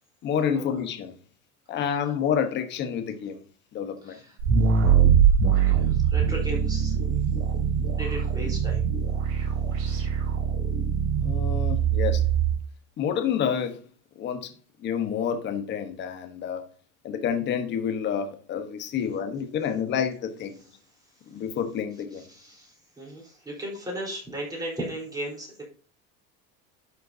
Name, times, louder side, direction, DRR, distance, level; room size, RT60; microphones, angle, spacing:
voice 1, 0.2-1.1 1.7-3.4 3.7-4.2 11.2-12.2 13.0-13.8 14.2-14.5 14.8-16.6 17.0-20.6 21.3-22.2, left 8 dB, 30° left, 1.2 m, -28 dB
voice 2, 4.0-4.4 5.5-6.9 8.0-8.9 9.7-10.0 22.1-25.6, right 1 dB, 10° right, 4.0 m, -36 dB
sound 1, 4.4-12.6, right 8 dB, 70° right, 3.6 m, -23 dB
12.0 x 6.7 x 2.8 m
cardioid pair, 175°, 35 cm